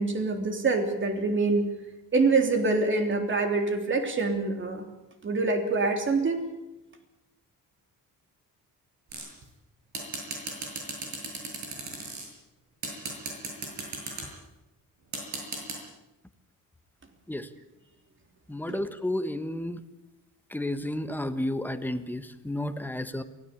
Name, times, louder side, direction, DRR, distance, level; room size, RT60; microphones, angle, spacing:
voice 1, 0.0-1.7 2.1-4.9 5.2-6.4 18.7-18.8, right 3 dB, 35° right, 5 dB, 3.4 m, -25 dB
sound 1, 9.1-9.4 9.9-12.2 12.8-14.3 15.1-15.8, right 3 dB, 55° right, 7.8 m, -35 dB
voice 2, 18.5-19.8 20.5-23.2, left 1 dB, 5° left, 10 dB, 1.3 m, -31 dB
23.5 x 17.0 x 8.4 m, 0.97 s
cardioid pair, 150°, 34 cm